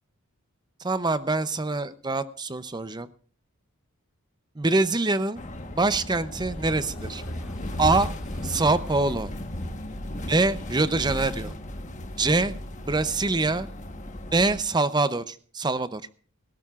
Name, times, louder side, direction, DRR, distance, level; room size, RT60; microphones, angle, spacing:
voice 1, 0.8-3.1 4.6-5.4 5.7-7.2 7.8-8.1 8.4-9.3 10.2-11.5 12.2-12.5 12.9-13.7 14.3-16.0, right 3 dB, 20° right, 13 dB, 0.6 m, -24 dB
sound 1, 5.4-14.6, left 1 dB, 35° left, 1.3 m, -35 dB
sound 2, 6.6-9.6 10.0-10.1, equal, ahead, 2.1 m, -55 dB
18.5 x 17.0 x 2.4 m, 0.43 s
head